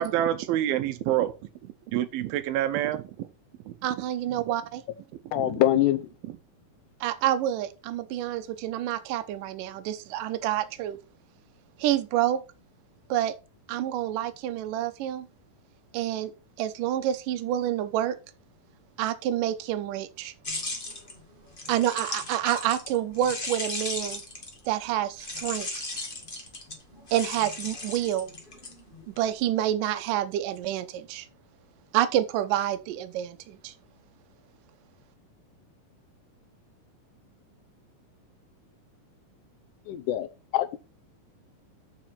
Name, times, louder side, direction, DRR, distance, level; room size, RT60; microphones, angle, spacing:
voice 1, 0.0-1.3 1.6-3.3 3.7-3.8 5.4-5.6 6.3-6.4, right 12 dB, 90° right, 2.7 m, -27 dB
voice 2, 3.8-4.8 7.0-11.0 11.8-12.4 13.1-13.3 13.7-15.3 15.9-16.3 16.6-18.2 19.0-20.3 21.7-24.2 24.7-26.0 27.1-28.3 29.1-31.3 31.9-33.7, right 12 dB, 75° right, 2.4 m, -28 dB
voice 3, 5.3-6.1 39.9-40.3 40.5-40.8, left 13 dB, 70° left, 2.2 m, -24 dB
sound 1, 20.4-24.7 25.2-29.2, left 2 dB, 25° left, 1.2 m, -36 dB
7.2 x 6.1 x 5.8 m
omnidirectional pair, 4.2 m